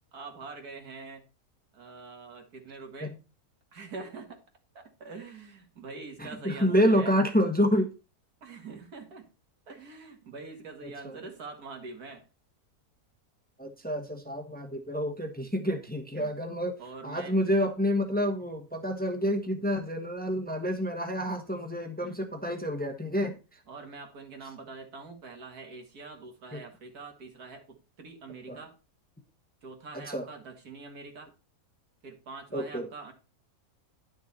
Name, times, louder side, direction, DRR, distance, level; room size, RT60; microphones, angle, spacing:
voice 1, 0.1-1.2 1.7-3.2 3.7-4.4 4.7-7.2 8.4-9.3 9.7-12.2 16.1-16.4 16.8-17.4 22.0-22.2 23.7-28.8 29.6-31.3 32.0-33.1, right 4 dB, 85° right, 4 dB, 2.5 m, -44 dB
voice 2, 6.2-7.9 11.0-11.1 13.6-16.8 17.0-23.3 26.5-26.6 28.5-28.6 29.9-30.3 32.5-32.9, equal, 5° left, 4 dB, 1.2 m, -28 dB
10.5 x 6.4 x 4.2 m, 0.30 s
omnidirectional pair, 1.6 m